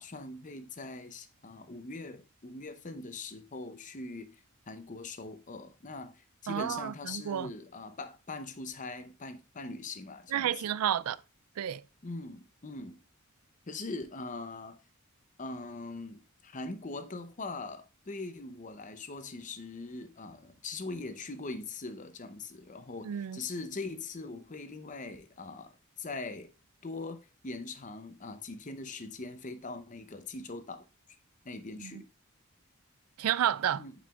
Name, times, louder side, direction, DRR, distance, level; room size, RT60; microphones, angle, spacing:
voice 1, 0.0-10.7 12.0-13.0 13.7-14.8 15.4-26.5 26.8-30.8 31.4-32.1 33.8-33.9, left 3 dB, 35° left, 0.7 m, -42 dB
voice 2, 6.5-7.5 10.3-11.2 11.6-11.8 23.0-23.4 31.8-32.0 33.2-33.8, right 10 dB, 75° right, 0.3 m, -31 dB
9.1 x 4.8 x 2.4 m
head